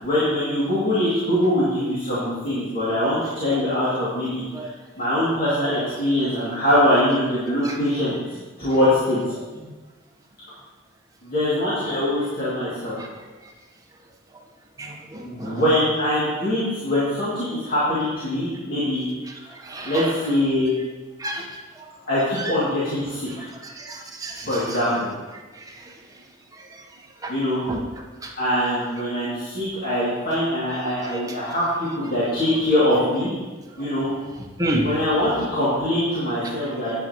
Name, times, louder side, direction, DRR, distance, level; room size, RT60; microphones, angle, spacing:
voice 1, 0.0-4.4 5.0-8.1 8.6-9.2 11.2-13.0 15.2-19.0 19.8-20.7 22.1-23.5 24.5-25.1 27.3-27.6 28.4-33.3 33.8-34.1 34.8-37.0, left 1 dB, 45° left, -11 dB, 2.4 m, -23 dB
voice 2, 14.8-15.6 19.6-20.1 21.2-21.4 21.8-21.9 23.6-24.8 27.2-27.3 27.7-27.8 28.2-28.3 31.1-31.2 34.6-34.9, right 1 dB, 15° right, -1 dB, 0.9 m, -30 dB
9.4 x 9.1 x 3.0 m, 1.3 s
head